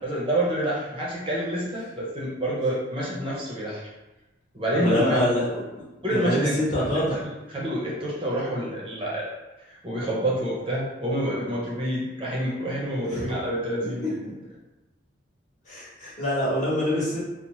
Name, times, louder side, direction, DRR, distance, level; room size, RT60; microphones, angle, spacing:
voice 1, 0.0-3.9 4.5-5.2 6.0-6.5 6.8-9.3 9.7-14.1, right 1 dB, 25° right, -5 dB, 0.5 m, -28 dB
voice 2, 4.8-5.6 6.1-7.2 13.1-13.3 14.2-14.3 15.7-17.2, equal, 40° left, -7 dB, 0.9 m, -25 dB
2.7 x 2.0 x 3.0 m, 1.1 s
head